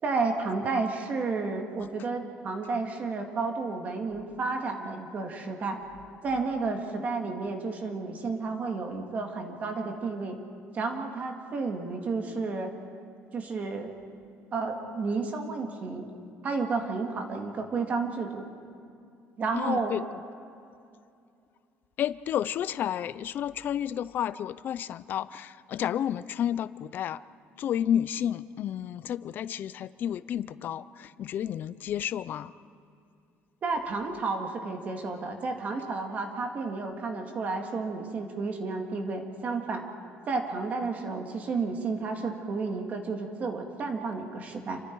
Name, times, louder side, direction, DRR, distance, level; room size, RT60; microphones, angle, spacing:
voice 1, 0.0-5.8 6.2-10.4 10.7-12.7 13.3-13.9 14.5-16.1 16.4-18.4 19.4-20.0 33.6-39.8 40.3-44.8, right 4 dB, 35° right, 3 dB, 2.1 m, -31 dB
voice 2, 19.5-20.0 22.0-27.2 27.6-32.5, left 10 dB, 45° left, 16 dB, 0.5 m, -31 dB
28.0 x 24.5 x 4.7 m, 2.5 s
cardioid pair, 165°, 5 cm